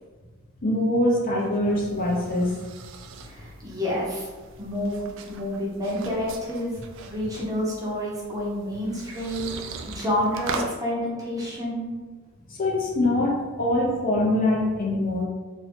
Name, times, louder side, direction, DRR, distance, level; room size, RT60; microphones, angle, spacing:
voice 1, 0.6-2.5 12.5-15.2, left 1 dB, 40° left, -2 dB, 0.6 m, -23 dB
sound 1, 1.1-10.7, right 4 dB, 60° right, 0.3 m, -41 dB
voice 2, 3.2-4.3 4.6-6.8 7.1-9.5 9.8-11.9, left 1 dB, 15° right, -5 dB, 0.7 m, -29 dB
2.6 x 2.6 x 3.4 m, 1.3 s
head